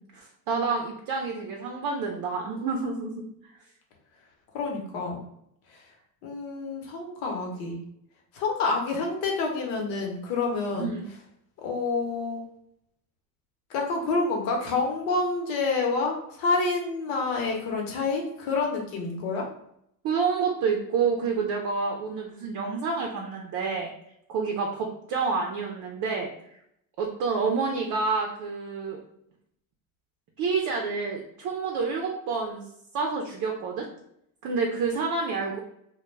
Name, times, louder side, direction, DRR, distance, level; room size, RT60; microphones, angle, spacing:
voice 1, 0.1-3.3 10.8-11.1 20.0-23.9 24.3-26.3 27.0-29.0 30.4-32.6 32.9-33.9 34.4-35.6, right 4 dB, 45° right, 1 dB, 0.6 m, -28 dB
voice 2, 4.5-5.2 5.7-5.9 6.2-7.8 8.3-10.9 11.6-12.4 13.7-19.5, left 3 dB, 70° left, 0 dB, 1.0 m, -28 dB
2.2 x 2.2 x 3.1 m, 0.75 s
supercardioid pair, 95°, 45 cm